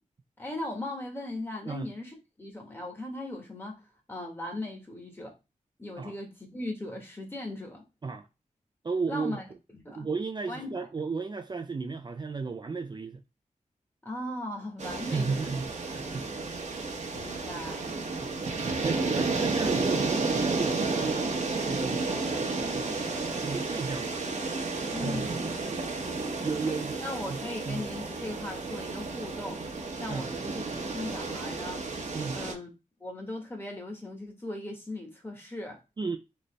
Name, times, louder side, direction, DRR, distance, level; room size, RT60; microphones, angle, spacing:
voice 1, 0.4-5.3 5.8-7.8 9.1-9.5 9.7-10.1 10.5-10.7 14.0-15.6 17.1-17.9 24.9-25.4 26.7-26.8 27.0-31.9 32.3-32.7 33.0-35.8, left 1 dB, 15° left, 1.4 m, -38 dB
voice 2, 8.8-9.4 10.0-13.2 15.1-16.3 18.2-18.3 18.8-21.3 21.6-22.0 22.7-24.2 25.0-25.4 26.4-27.0 27.3-27.9 30.1-30.3 32.1-32.4 36.0-36.2, right 4 dB, 35° right, 0.4 m, -34 dB
sound 1, 14.8-32.5, right 3 dB, 55° right, 0.9 m, -32 dB
4.0 x 3.2 x 3.2 m
wide cardioid pair, 105°, 14 cm